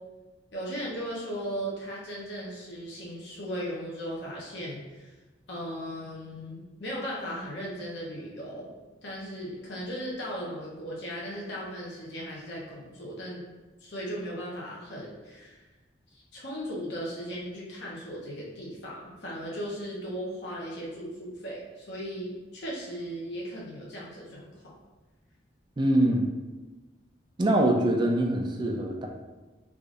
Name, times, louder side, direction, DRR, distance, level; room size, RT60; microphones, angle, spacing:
voice 1, 0.5-5.1 5.5-8.7 9.0-13.5 13.8-15.6 16.1-24.7, equal, 70° left, -5 dB, 0.8 m, -37 dB
voice 2, 25.8-26.2 27.4-29.1, right 1 dB, 25° right, 2 dB, 0.3 m, -24 dB
4.7 x 2.5 x 2.5 m, 1.2 s
head